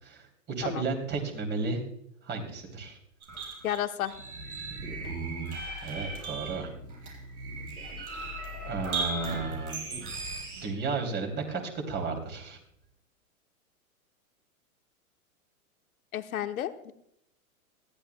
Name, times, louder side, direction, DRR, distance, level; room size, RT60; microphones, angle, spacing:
voice 1, 0.0-1.8 2.2-3.0 5.8-6.7 8.6-9.8 10.6-12.6, right 4 dB, 25° right, 4 dB, 3.1 m, -33 dB
sound 1, 3.2-10.6, right 3 dB, 85° right, 6.5 m, -37 dB
voice 2, 3.6-4.1 16.1-16.9, left 11 dB, 75° left, 9 dB, 1.1 m, -32 dB
20.0 x 15.0 x 2.3 m, 0.77 s
hypercardioid pair, 120°, 43 cm